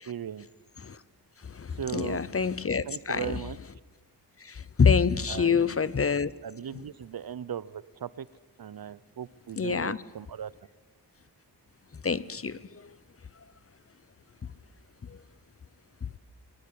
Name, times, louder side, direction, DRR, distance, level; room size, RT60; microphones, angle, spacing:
voice 1, 0.1-0.5 1.8-2.2 2.9-3.6 5.3-5.8 6.4-8.3 8.6-10.5, right 9 dB, 60° right, 19 dB, 0.7 m, -38 dB
voice 2, 1.5-3.4 4.5-6.3 9.6-10.0 12.0-12.6, left 6 dB, 35° left, 18 dB, 0.8 m, -26 dB
22.0 x 19.0 x 8.7 m, 1.3 s
wide cardioid pair, 75°, 39 cm